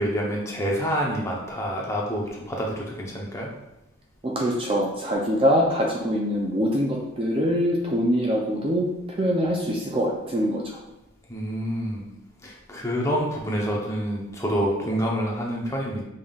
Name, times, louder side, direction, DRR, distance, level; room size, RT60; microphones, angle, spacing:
voice 1, 0.0-3.6 11.3-12.0 12.4-16.0, equal, 15° left, -2 dB, 0.7 m, -27 dB
voice 2, 4.2-10.8, equal, 25° right, -1 dB, 0.4 m, -24 dB
5.2 x 3.6 x 2.3 m, 0.95 s
head